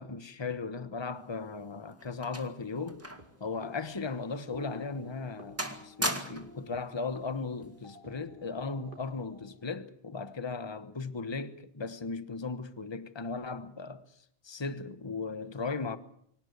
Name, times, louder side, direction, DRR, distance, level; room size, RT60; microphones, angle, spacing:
voice 1, 0.0-3.0 3.4-14.0 14.4-16.0, left 4 dB, 25° left, 1.2 m, -37 dB
sound 1, 1.3-3.4 3.7-3.9 4.5-4.6 5.1-5.3 5.6-6.6 7.6-7.9, right 1 dB, 10° right, 2.0 m, -37 dB
sound 2, 2.0-9.6, equal, 50° right, 3.6 m, -52 dB
24.5 x 18.0 x 8.0 m
omnidirectional pair, 1.1 m